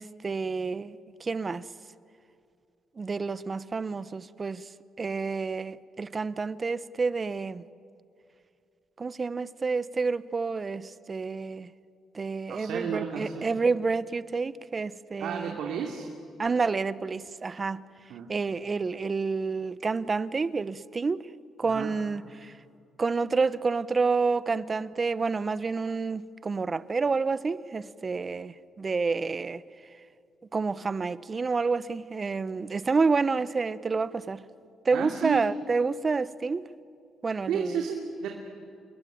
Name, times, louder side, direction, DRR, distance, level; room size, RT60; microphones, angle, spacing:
voice 1, 0.0-1.6 3.0-4.7 5.0-7.6 9.0-11.7 12.1-15.6 16.4-17.8 18.3-21.3 21.6-22.5 23.0-29.6 30.5-34.4 34.8-36.7 37.2-37.8, right 4 dB, 35° right, 0.9 m, -29 dB
voice 2, 12.5-13.5 15.2-16.1 18.1-18.3 21.6-21.9 34.9-35.4 37.5-38.3, right 7 dB, 80° right, 2.7 m, -32 dB
28.5 x 21.5 x 9.4 m
cardioid pair, 90°, 0 cm